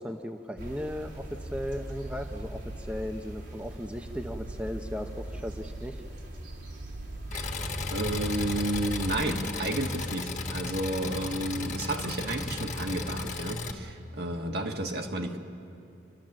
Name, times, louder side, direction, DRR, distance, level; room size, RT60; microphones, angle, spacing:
voice 1, 0.0-2.6 2.9-6.0, equal, 5° right, 4 dB, 0.8 m, -36 dB
sound 1, 0.6-9.2, right 1 dB, 80° right, 3.6 m, -40 dB
Engine, 7.3-13.7, left 3 dB, 40° left, 1.4 m, -35 dB
voice 2, 7.9-15.4, right 1 dB, 60° right, 2 dB, 1.8 m, -31 dB
29.5 x 12.5 x 7.6 m, 2.6 s
head